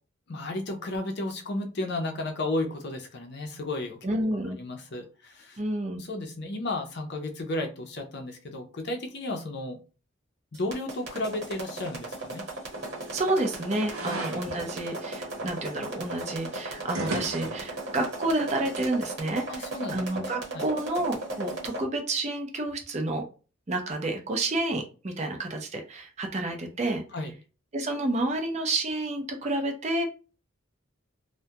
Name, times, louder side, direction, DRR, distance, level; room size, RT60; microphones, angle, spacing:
voice 1, 0.3-4.0 4.6-5.6 5.9-9.8 10.5-12.4 14.0-14.2 19.5-20.0 20.5-20.6 27.1-27.3, left 2 dB, 50° left, 4 dB, 0.5 m, -33 dB
voice 2, 4.0-4.6 5.6-6.0 13.1-23.2 23.7-27.0 27.7-30.0, right 2 dB, 30° right, 4 dB, 0.5 m, -30 dB
sound 1, 10.5-21.8, right 2 dB, 50° right, 1.1 m, -36 dB
sound 2, 12.7-18.9, right 1 dB, 85° right, 0.6 m, -39 dB
2.2 x 2.1 x 2.7 m, 0.34 s
head